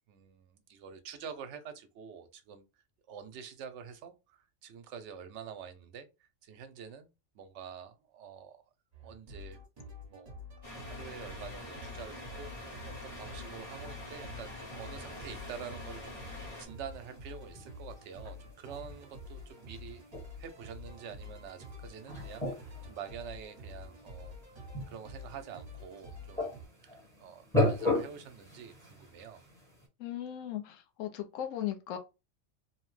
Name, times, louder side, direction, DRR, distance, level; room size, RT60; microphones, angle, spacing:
voice 1, 0.1-2.7 3.1-7.1 7.3-8.6 9.0-9.6 10.1-12.8 13.0-20.0 20.4-24.3 24.9-26.5 27.2-29.4, right 7 dB, 70° right, 0.8 m, -47 dB
sound 1, 8.9-26.7, left 2 dB, 35° right, 1.0 m, -48 dB
sound 2, 10.6-16.7, left 1 dB, 30° left, 0.8 m, -45 dB
sound 3, 12.3-29.9, left 2 dB, 5° left, 1.0 m, -39 dB
voice 2, 30.0-32.0, left 11 dB, 85° left, 1.0 m, -37 dB
2.8 x 2.0 x 3.1 m
omnidirectional pair, 1.3 m